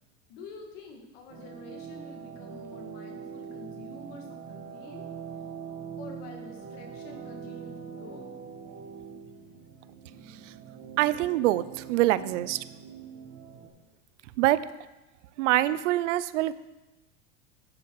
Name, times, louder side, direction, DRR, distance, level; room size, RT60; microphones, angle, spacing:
voice 1, 0.3-5.1 6.0-8.3, left 3 dB, 50° left, 2 dB, 1.9 m, -47 dB
sound 1, 1.3-13.7, right 7 dB, 30° right, 1.5 m, -43 dB
voice 2, 11.0-11.6 11.9-12.6 14.4-14.6 15.4-16.5, right 15 dB, 85° right, 16 dB, 0.6 m, -24 dB
11.0 x 6.2 x 4.7 m, 1.0 s
supercardioid pair, 175°, 36 cm